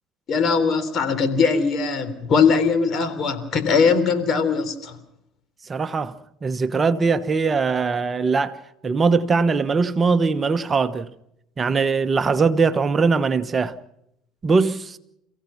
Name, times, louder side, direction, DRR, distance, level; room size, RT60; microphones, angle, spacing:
voice 1, 0.3-5.0, left 5 dB, 50° left, 3.6 m, -20 dB
voice 2, 5.7-6.1 6.4-8.6 8.8-11.1 11.6-13.7 14.4-15.0, right 4 dB, 30° right, 1.1 m, -21 dB
30.0 x 16.0 x 5.8 m
supercardioid pair, 80°, 0 cm